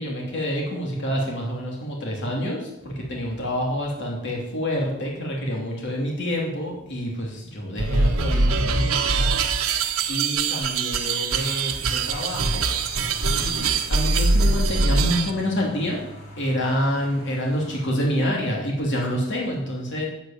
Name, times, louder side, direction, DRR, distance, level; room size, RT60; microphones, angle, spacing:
voice 1, 0.0-9.3 10.1-12.7 13.4-16.0 16.4-20.1, equal, 55° left, -2 dB, 3.0 m, -27 dB
sound 1, 7.8-15.3, right 3 dB, 85° right, 1.4 m, -23 dB
sound 2, 11.0-17.8, equal, 35° left, 4.8 m, -43 dB
10.0 x 8.4 x 8.9 m, 0.87 s
head